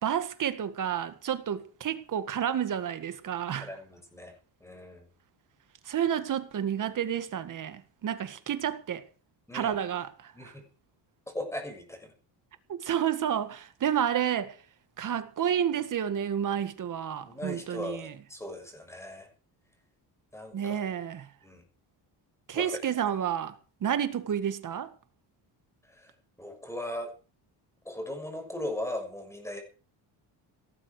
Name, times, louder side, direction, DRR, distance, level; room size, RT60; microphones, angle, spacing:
voice 1, 0.0-3.7 5.9-9.0 9.5-10.5 12.7-14.6 15.0-18.1 20.5-21.3 22.5-23.6 23.8-24.9, right 9 dB, 45° right, 1.9 m, -30 dB
voice 2, 3.6-4.3 4.6-5.1 9.5-9.8 10.3-10.6 11.3-12.1 17.2-19.3 20.3-20.8 21.4-21.6 22.5-22.8 25.9-26.1 26.4-27.1 27.8-29.6, left 1 dB, 5° left, 6.6 m, -38 dB
18.0 x 13.0 x 5.0 m
cardioid pair, 145°, 43 cm